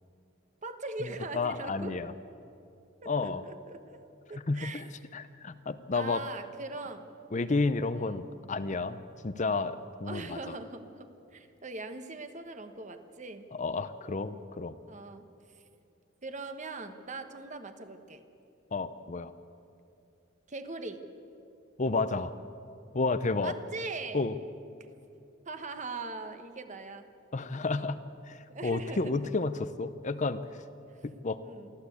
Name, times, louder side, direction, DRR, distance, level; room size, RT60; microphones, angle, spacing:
voice 1, 0.6-2.0 3.0-4.0 4.3-4.8 5.9-7.1 7.9-8.2 10.1-13.5 14.9-15.6 16.2-18.2 20.5-21.0 23.4-24.2 25.4-27.1 28.5-29.3 30.9-31.0 31.4-31.7, right 3 dB, 35° right, 8 dB, 1.2 m, -41 dB
voice 2, 1.3-2.1 3.1-3.4 4.5-4.9 5.1-6.2 7.3-10.6 13.5-14.7 18.7-19.3 21.8-22.3 22.9-23.6 24.1-24.3 27.3-28.0 28.3-30.4 31.0-31.4, left 3 dB, 35° left, 12 dB, 0.6 m, -31 dB
23.5 x 15.0 x 8.3 m, 2.6 s
head